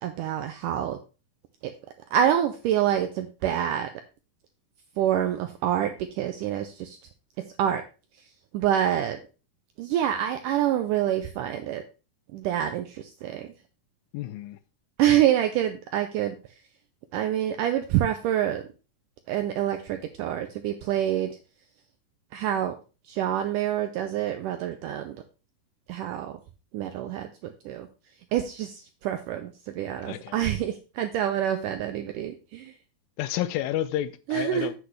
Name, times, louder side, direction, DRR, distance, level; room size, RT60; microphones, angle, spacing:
voice 1, 0.0-1.0 2.1-3.9 5.0-7.0 7.6-7.8 8.5-9.2 9.8-11.8 12.3-13.5 15.0-16.4 17.1-18.6 19.3-21.3 22.3-22.8 23.1-25.2 25.9-26.4 26.7-27.9 28.3-32.8 34.3-34.7, right 11 dB, 85° right, 1.8 m, -26 dB
voice 2, 14.1-14.6 30.0-30.4 33.2-34.8, left 13 dB, 80° left, 2.2 m, -30 dB
8.0 x 7.9 x 3.2 m
omnidirectional pair, 4.3 m